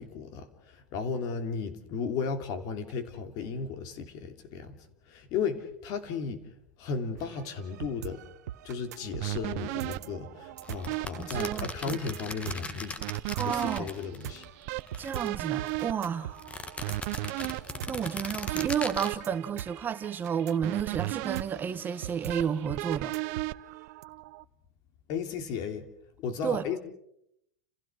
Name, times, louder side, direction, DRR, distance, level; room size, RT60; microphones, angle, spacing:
voice 1, 0.0-4.8 5.1-6.4 6.8-8.2 8.6-12.9 13.4-14.4 25.1-25.9 26.2-26.8, left 5 dB, 45° left, 3.1 m, -35 dB
sound 1, 7.2-24.0, right 12 dB, 80° right, 1.0 m, -43 dB
sound 2, 9.2-24.4, right 20 dB, 55° right, 0.8 m, -37 dB
sound 3, 10.6-14.4 14.7-15.8 16.4-19.1, left 3 dB, 15° left, 1.5 m, -39 dB
voice 2, 11.2-12.0 13.3-13.9 15.0-16.4 17.9-23.1 26.4-26.6, right 8 dB, 20° right, 1.2 m, -31 dB
30.0 x 16.0 x 6.3 m
supercardioid pair, 140°, 9 cm